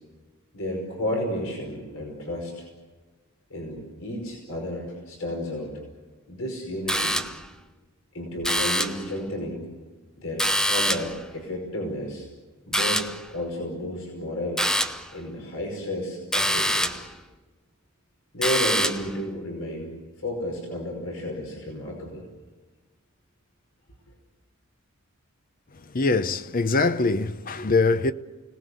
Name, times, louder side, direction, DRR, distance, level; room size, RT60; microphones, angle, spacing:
voice 1, 0.5-2.7 3.5-5.7 6.3-7.2 8.1-9.6 10.2-12.3 12.7-14.7 15.1-17.1 18.3-19.9 20.2-22.2, left 1 dB, 75° left, 5.3 m, -32 dB
sound 1, 6.9-7.5 8.4-9.1 10.4-11.2 12.7-13.3 14.6-15.1 16.3-17.1 18.4-19.1, equal, 5° left, 0.8 m, -25 dB
voice 2, 25.7-28.1, left 3 dB, 40° left, 0.7 m, -23 dB
29.5 x 19.0 x 8.1 m
head